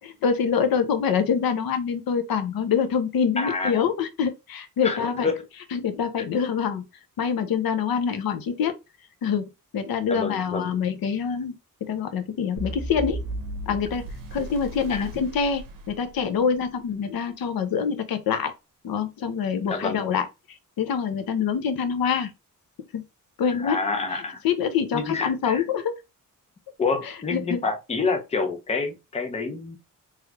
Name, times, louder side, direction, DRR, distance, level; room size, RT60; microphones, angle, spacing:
voice 1, 0.2-5.3 5.7-6.8 7.2-8.7 9.2-9.4 9.7-13.2 13.7-18.5 18.8-22.3 22.9-23.0 23.4-23.8 24.1-26.0 27.0-27.6, left 6 dB, 90° left, 0.7 m, -25 dB
voice 2, 3.4-3.8 4.8-5.3 10.1-10.7 14.9-15.0 19.7-20.0 23.6-24.4 24.9-25.6 26.8-29.8, left 4 dB, 20° left, 0.5 m, -28 dB
sound 1, 12.6-16.7, right 1 dB, 70° right, 0.8 m, -35 dB
3.2 x 3.1 x 2.3 m
wide cardioid pair, 180°, 35 cm